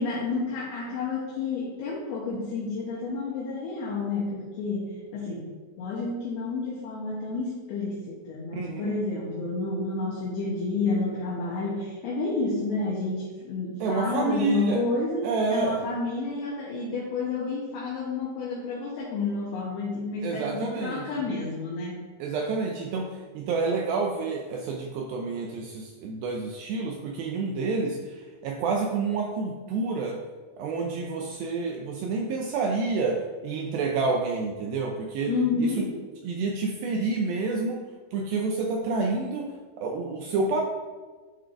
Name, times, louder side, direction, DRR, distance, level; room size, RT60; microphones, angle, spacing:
voice 1, 0.0-5.4 5.8-22.0 35.3-35.9, left 3 dB, 70° left, -4 dB, 2.8 m, -30 dB
voice 2, 8.5-8.9 13.8-14.8 15.2-15.8 20.2-21.1 22.2-23.1 23.4-30.2 30.6-35.3 35.6-35.8 36.2-37.8 38.1-39.5 39.8-40.6, right 4 dB, 90° right, 0 dB, 2.0 m, -28 dB
11.0 x 4.5 x 2.5 m, 1.4 s
omnidirectional pair, 4.9 m